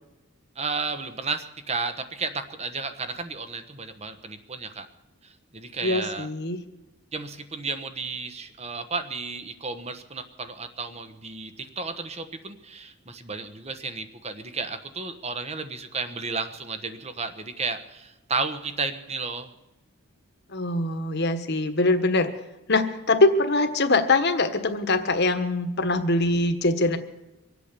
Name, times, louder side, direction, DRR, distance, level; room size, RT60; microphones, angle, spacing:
voice 1, 0.6-4.9 5.2-6.3 7.1-19.5, right 4 dB, 30° right, 9 dB, 1.1 m, -33 dB
voice 2, 5.8-6.6 20.5-22.3 22.7-27.0, left 2 dB, 50° left, 7 dB, 1.4 m, -23 dB
24.5 x 8.4 x 6.8 m, 1.0 s
head